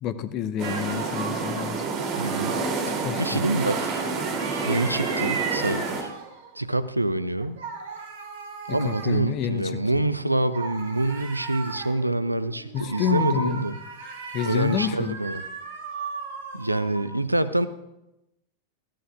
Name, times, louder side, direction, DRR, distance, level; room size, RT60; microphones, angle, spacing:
voice 1, 0.0-1.8 3.0-3.4 8.7-9.6 12.7-13.7 14.3-15.2, left 9 dB, 40° left, 12 dB, 0.8 m, -28 dB
sound 1, 0.6-6.0, right 4 dB, 40° right, 3.1 m, -29 dB
sound 2, 0.6-6.6 7.4-9.8 10.5-17.1, right 5 dB, 60° right, 2.4 m, -36 dB
voice 2, 2.2-2.6 2.9-4.0 4.6-6.1 6.5-7.6 8.7-13.8 14.4-15.4 16.5-17.7, right 2 dB, 85° right, 13 dB, 0.6 m, -26 dB
19.5 x 13.5 x 2.5 m, 0.91 s
figure-of-eight pair, 90°, 0 cm